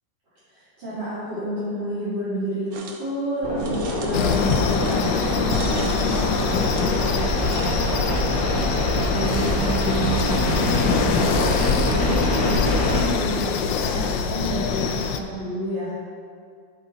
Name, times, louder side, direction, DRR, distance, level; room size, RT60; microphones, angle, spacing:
voice 1, 0.5-2.7 3.0-15.9, equal, 90° right, -15 dB, 3.6 m, -30 dB
sound 1, 2.7-3.1 3.6-7.8, right 4 dB, 60° right, 1.2 m, -37 dB
sound 2, 3.4-13.0, left 1 dB, 55° left, 2.6 m, -24 dB
sound 3, 4.1-15.2, left 6 dB, 90° left, 1.4 m, -25 dB
14.0 x 5.7 x 4.0 m, 2.2 s
omnidirectional pair, 1.9 m